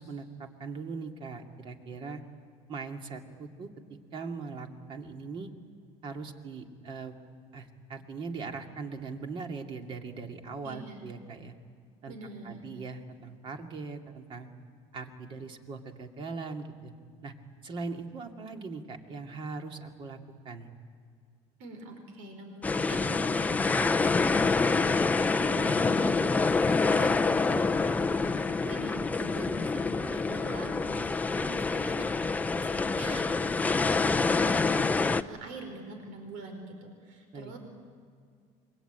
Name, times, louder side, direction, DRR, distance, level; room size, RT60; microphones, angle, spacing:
voice 1, 0.0-2.2 2.7-5.5 6.0-7.1 7.5-11.5 12.0-12.1 12.4-14.5 14.9-16.9 17.2-17.3 17.6-20.2 20.4-20.7 25.5-25.8 37.3-37.5, right 4 dB, 40° right, 4 dB, 2.4 m, -40 dB
voice 2, 10.6-11.1 12.1-12.6 21.6-37.6, right 2 dB, 75° right, 5 dB, 4.9 m, -44 dB
sound 1, 22.6-35.2, left 4 dB, 10° left, 0.6 m, -26 dB
26.5 x 23.5 x 9.1 m, 2.1 s
cardioid pair, 140°, 13 cm